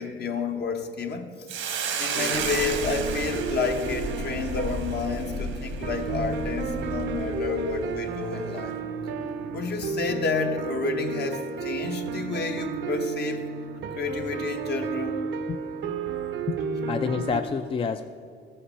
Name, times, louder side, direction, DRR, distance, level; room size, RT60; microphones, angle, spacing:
voice 1, 0.0-1.7 2.0-8.8 9.5-13.6 13.9-15.2, left 4 dB, 55° left, 4 dB, 1.1 m, -30 dB
Hiss, 1.5-6.0, right 7 dB, 85° right, 1.2 m, -33 dB
sound 1, 2.1-17.4, right 5 dB, 70° right, 0.7 m, -32 dB
sound 2, 2.3-7.3, left 2 dB, 75° left, 1.6 m, -35 dB
voice 2, 16.9-18.0, left 5 dB, 25° left, 8 dB, 0.4 m, -28 dB
14.0 x 5.7 x 5.6 m, 2.2 s
cardioid pair, 90°, 20 cm